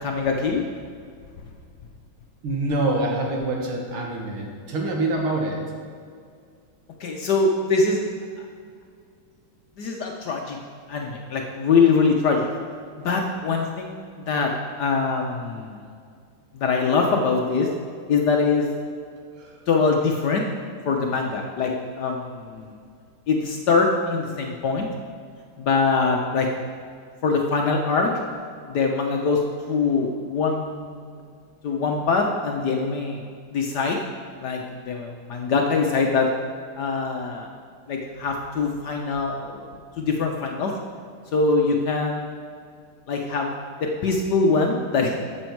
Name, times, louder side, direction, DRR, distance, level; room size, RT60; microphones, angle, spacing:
voice 1, 0.0-0.6 7.0-8.0 8.4-8.5 9.8-10.6 10.9-12.5 13.0-14.5 14.8-15.9 16.5-17.7 18.1-18.7 19.7-20.4 20.8-21.7 22.0-22.7 23.3-24.9 25.6-26.5 27.2-28.1 28.7-31.2 31.6-33.2 33.5-34.0 34.4-36.3 36.8-37.5 37.9-39.6 40.0-40.7 41.3-42.2 43.1-45.1, left 4 dB, 60° left, 1 dB, 1.1 m, -23 dB
voice 2, 2.4-5.6 19.4-19.5, right 2 dB, 70° right, 0 dB, 2.3 m, -25 dB
12.0 x 7.1 x 4.6 m, 2.2 s
omnidirectional pair, 2.4 m